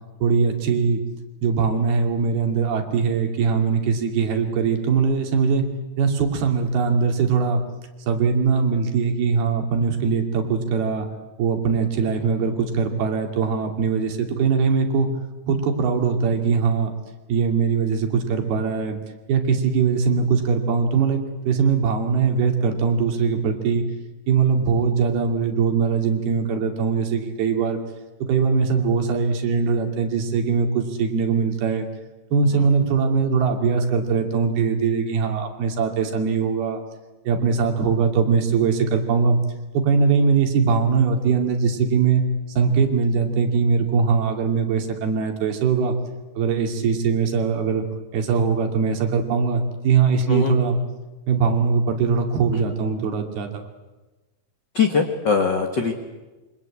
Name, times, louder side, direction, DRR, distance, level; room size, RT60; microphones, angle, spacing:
voice 1, 0.2-1.0 1.4-5.7 6.0-7.6 8.1-11.1 11.4-15.1 15.5-16.9 17.3-19.0 19.3-23.8 24.3-27.8 28.3-31.9 32.3-36.8 37.3-39.4 39.7-42.2 42.6-45.9 46.4-47.8 48.1-50.8 51.3-53.6, right 5 dB, 80° right, 4 dB, 4.6 m, -21 dB
voice 2, 54.7-55.9, left 5 dB, 45° left, 4 dB, 1.5 m, -21 dB
27.5 x 24.5 x 8.6 m, 1.2 s
omnidirectional pair, 4.4 m